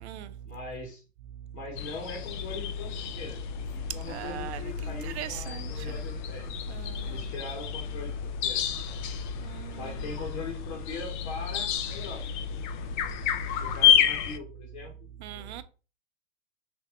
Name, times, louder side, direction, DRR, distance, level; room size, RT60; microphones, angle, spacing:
voice 1, 0.4-1.0 1.5-3.4 3.7-6.5 7.0-9.0 9.8-12.2 13.3-15.1 15.3-15.6, left 3 dB, 60° left, 1.2 m, -41 dB
sound 1, 1.8-14.4, left 9 dB, 45° left, 0.4 m, -30 dB
voice 2, 4.1-5.7 6.7-7.2 9.4-9.9 15.2-15.6, right 11 dB, 65° right, 0.5 m, -39 dB
3.3 x 2.2 x 3.6 m
hypercardioid pair, 120°, 36 cm